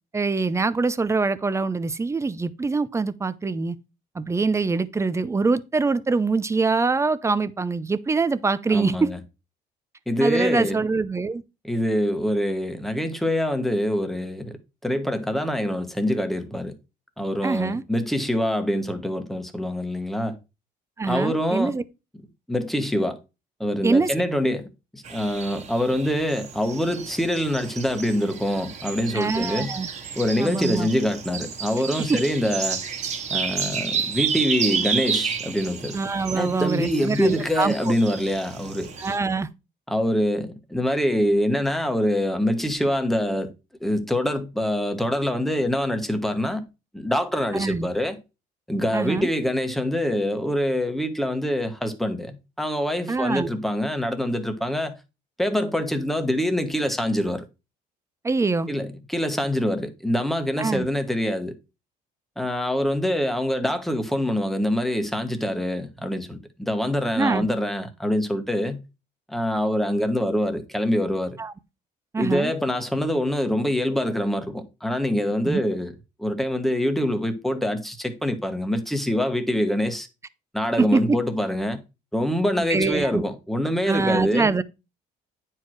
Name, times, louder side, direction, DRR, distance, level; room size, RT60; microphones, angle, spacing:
voice 1, 0.1-3.8 4.1-9.1 10.2-11.4 17.4-17.8 21.0-21.8 23.8-24.1 29.1-29.9 30.4-30.9 32.0-32.2 35.9-38.0 39.0-39.5 47.5-47.9 48.9-49.3 53.1-53.5 58.2-58.7 60.6-60.9 67.1-67.5 71.4-71.5 72.1-72.5 75.4-75.6 80.8-81.2 82.7-83.2 83.9-84.6, right 4 dB, 15° right, 0.6 m, -24 dB
voice 2, 8.7-9.2 10.1-10.8 11.6-16.7 17.2-20.4 21.1-21.7 22.5-23.2 23.6-24.7 24.9-29.8 30.2-32.8 33.3-36.0 36.3-38.9 39.9-43.5 43.8-46.6 46.9-48.2 48.7-55.0 55.4-57.4 58.7-61.5 62.4-68.8 69.3-71.4 72.2-75.9 76.2-80.1 80.5-81.8 82.1-84.5, equal, ahead, 1.4 m, -25 dB
sound 1, 25.0-39.2, right 6 dB, 40° right, 1.6 m, -31 dB
9.5 x 4.6 x 4.6 m
cardioid pair, 110°, 17 cm